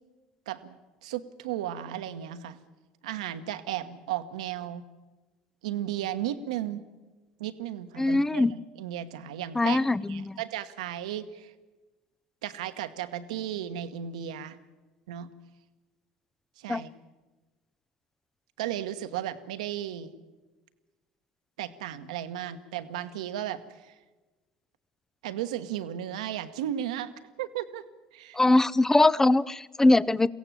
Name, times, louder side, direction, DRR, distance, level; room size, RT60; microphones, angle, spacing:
voice 1, 0.5-2.6 3.0-4.8 5.6-6.8 7.4-9.8 10.1-11.5 12.4-14.6 15.1-15.3 16.6-16.9 18.6-20.1 21.6-24.0 25.2-27.1 27.4-27.8 28.1-28.4, right 11 dB, 80° right, 10 dB, 1.2 m, -35 dB
voice 2, 8.0-8.5 9.6-10.3 16.7-16.8 28.4-30.3, left 2 dB, 10° left, 19 dB, 0.6 m, -22 dB
23.0 x 16.5 x 7.4 m, 1.2 s
hypercardioid pair, 75°, 4 cm